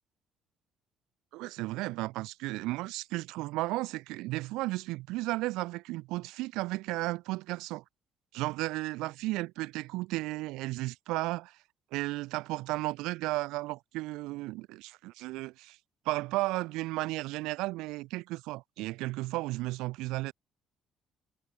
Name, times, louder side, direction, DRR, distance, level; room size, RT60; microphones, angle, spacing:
voice 1, 1.3-7.8 8.3-11.6 11.9-15.8 16.0-20.3, right 20 dB, 90° right, 1.2 m, -34 dB
cardioid pair, 85°, 0 cm